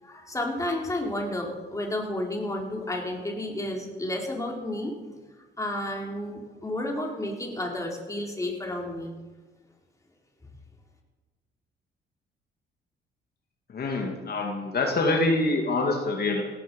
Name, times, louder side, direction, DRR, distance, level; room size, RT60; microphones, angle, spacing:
voice 1, 0.0-5.0 5.6-9.1, left 1 dB, 15° left, 0 dB, 4.2 m, -31 dB
voice 2, 13.7-16.4, left 2 dB, 50° left, 2 dB, 2.7 m, -25 dB
17.5 x 14.0 x 5.6 m, 1.3 s
cardioid pair, 90°, 20 cm